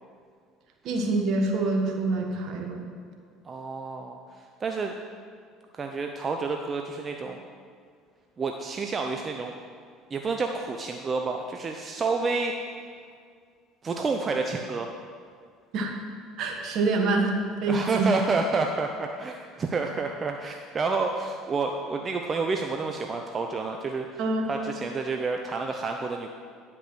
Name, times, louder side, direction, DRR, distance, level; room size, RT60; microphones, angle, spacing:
voice 1, 0.8-2.8 15.7-15.9 16.4-17.3 17.6-18.1 24.2-24.5, right 3 dB, 60° right, 3 dB, 1.5 m, -26 dB
voice 2, 3.4-4.9 5.7-7.4 8.4-9.5 10.1-12.5 13.8-14.9 17.7-24.1 24.5-26.3, right 4 dB, 35° right, 3 dB, 0.7 m, -29 dB
10.0 x 6.0 x 6.2 m, 2.1 s
hypercardioid pair, 70°, 0 cm